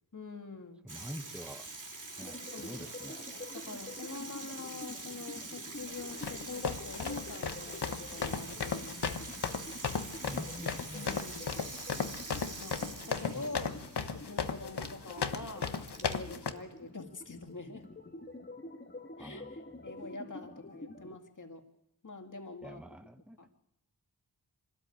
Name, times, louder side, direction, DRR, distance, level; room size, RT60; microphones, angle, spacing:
voice 1, 0.1-0.8 2.5-2.8 3.5-9.2 10.9-11.5 12.6-12.8 13.1-13.8 14.1-17.9 19.2-21.6 22.0-22.8 23.4-23.5, left 3 dB, 50° left, 4 dB, 2.3 m, -45 dB
voice 2, 0.8-1.7 2.2-3.2 10.2-11.0 13.1-13.5 19.2-19.8 22.6-23.4, equal, 5° right, 8 dB, 1.3 m, -46 dB
Water tap faucet / Sink (filling or washing), 0.9-18.4, right 3 dB, 50° right, 2.7 m, -46 dB
sound 1, 2.2-21.2, left 2 dB, 30° left, 1.8 m, -49 dB
sound 2, 5.9-16.5, left 5 dB, 80° left, 1.3 m, -36 dB
24.5 x 13.5 x 8.7 m, 0.88 s
cardioid pair, 45°, 39 cm